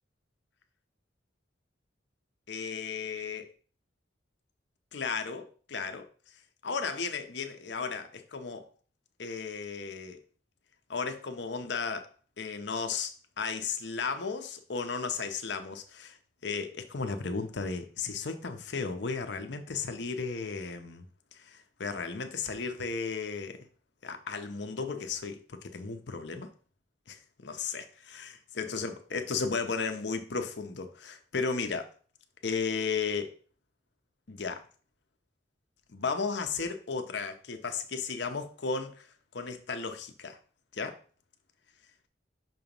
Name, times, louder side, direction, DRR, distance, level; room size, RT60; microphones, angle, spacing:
voice 1, 2.5-3.5 4.9-6.1 6.6-8.7 9.2-10.2 10.9-12.1 12.4-13.1 13.4-16.2 16.4-21.0 21.4-23.6 24.0-26.5 27.1-31.9 32.4-33.3 34.3-34.6 35.9-39.1 39.3-40.4 40.7-41.0, left 5 dB, 65° left, 7 dB, 0.7 m, -34 dB
6.0 x 3.0 x 5.2 m, 0.41 s
head